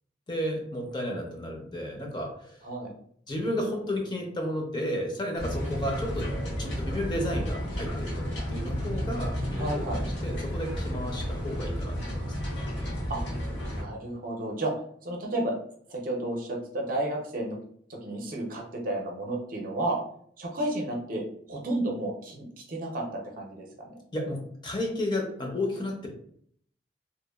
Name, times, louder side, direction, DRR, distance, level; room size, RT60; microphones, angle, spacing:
voice 1, 0.3-2.7 3.3-6.3 6.6-12.3 24.1-26.1, left 1 dB, 25° left, 1 dB, 0.5 m, -33 dB
sound 1, 5.4-13.8, equal, 80° left, 0.9 m, -32 dB
voice 2, 9.6-10.0 13.1-13.2 13.7-14.7 15.0-15.6 15.9-17.6 17.9-20.0 20.4-24.0, right 1 dB, 50° right, 0 dB, 0.6 m, -32 dB
2.9 x 2.1 x 2.2 m, 0.63 s
head